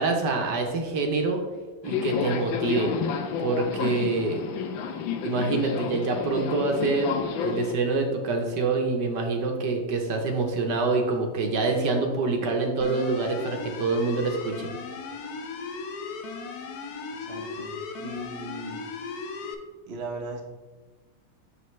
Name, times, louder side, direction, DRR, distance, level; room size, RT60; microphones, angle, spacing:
voice 1, 0.0-1.4 1.8-2.9 3.4-4.4 5.2-14.7, right 3 dB, 65° right, 3 dB, 1.3 m, -26 dB
Subway metro underground, 1.8-7.7, left 7 dB, 85° left, 1.4 m, -30 dB
sound 1, 12.8-19.5, left 4 dB, 65° left, 1.0 m, -37 dB
voice 2, 17.2-17.7 18.0-18.8 19.9-20.4, right 2 dB, 45° right, 1 dB, 0.8 m, -37 dB
6.6 x 6.5 x 3.1 m, 1.3 s
omnidirectional pair, 2.1 m